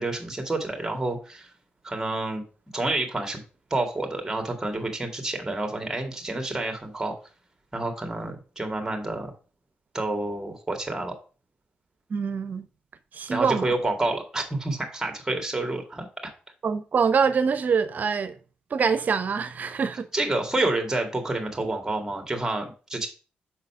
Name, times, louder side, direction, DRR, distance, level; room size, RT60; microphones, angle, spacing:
voice 1, 0.0-1.5 1.8-2.4 2.7-3.4 3.7-7.1 7.7-9.3 9.9-11.1 13.3-16.1 20.1-23.1, right 2 dB, 15° right, 2.0 m, -28 dB
voice 2, 12.1-12.7 13.1-13.7 16.6-18.4 18.7-20.1, right 6 dB, 55° right, 0.8 m, -24 dB
5.8 x 3.9 x 5.6 m
cardioid pair, 65°, 3 cm